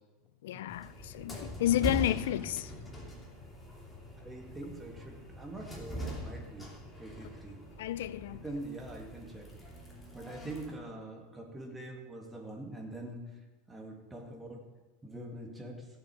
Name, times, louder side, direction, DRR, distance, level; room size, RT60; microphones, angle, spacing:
voice 1, 0.4-2.7 7.8-8.4, left 13 dB, 85° left, 0.4 m, -31 dB
sound 1, 0.7-10.7, equal, 10° left, 2.8 m, -42 dB
voice 2, 4.2-6.7 7.0-7.7 8.3-9.5 10.1-13.2 13.7-14.6 15.0-15.9, right 1 dB, 10° right, 2.1 m, -44 dB
16.5 x 7.7 x 5.0 m
supercardioid pair, 140°, 0 cm